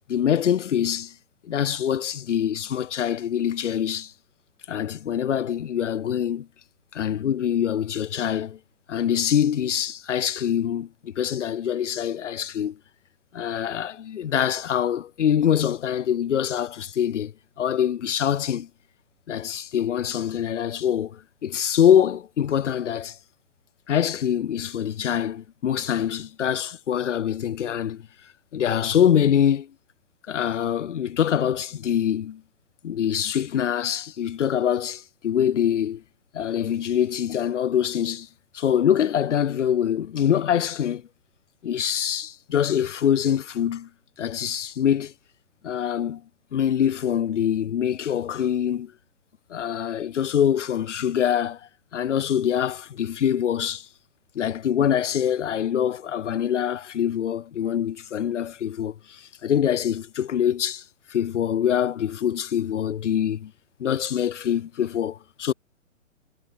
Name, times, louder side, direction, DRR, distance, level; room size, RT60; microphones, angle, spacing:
voice 1, 0.1-1.1 1.4-4.1 4.7-6.5 6.9-8.6 8.9-12.8 13.3-18.7 19.3-23.2 23.9-28.1 28.5-29.7 30.3-32.4 32.8-36.0 36.3-38.3 38.5-41.0 41.6-43.9 44.2-45.1 45.6-46.2 46.5-48.9 49.5-51.6 51.9-53.9 54.3-60.8 61.1-63.5 63.8-65.5, left 9 dB, 60° left, 0.8 m, -24 dB
figure-of-eight pair, 125°, 41 cm